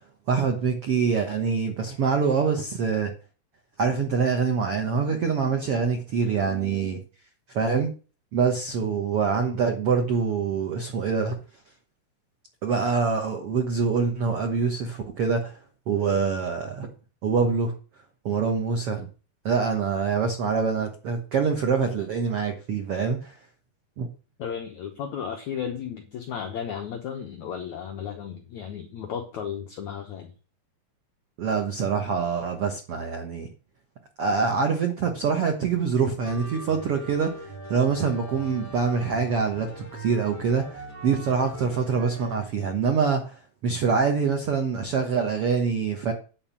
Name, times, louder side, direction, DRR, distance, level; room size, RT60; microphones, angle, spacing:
voice 1, 0.3-3.1 3.8-7.0 7.5-7.9 8.3-11.4 12.6-15.6 15.9-16.9 17.2-17.7 18.2-19.1 19.4-23.3 24.0-24.1 31.4-33.5 34.2-46.1, right 5 dB, 90° right, 1.2 m, -25 dB
voice 2, 24.4-30.3, left 8 dB, 70° left, 1.7 m, -34 dB
sound 1, 36.2-42.5, right 1 dB, 10° left, 1.1 m, -41 dB
10.5 x 4.6 x 7.3 m
omnidirectional pair, 4.7 m